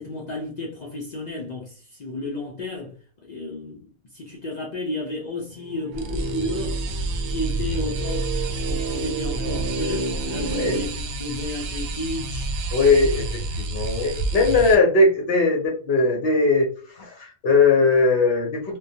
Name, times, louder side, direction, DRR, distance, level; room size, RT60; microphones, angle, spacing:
voice 1, 0.0-6.8 7.3-8.3 8.6-12.5, left 2 dB, 90° left, 0.3 m, -32 dB
sound 1, 5.5-10.8, right 3 dB, 65° right, 0.8 m, -31 dB
sound 2, 5.9-14.8, right 2 dB, 85° right, 1.0 m, -29 dB
voice 2, 12.7-16.7 17.0-18.8, left 3 dB, 60° left, 0.7 m, -19 dB
2.2 x 2.2 x 2.6 m
omnidirectional pair, 1.5 m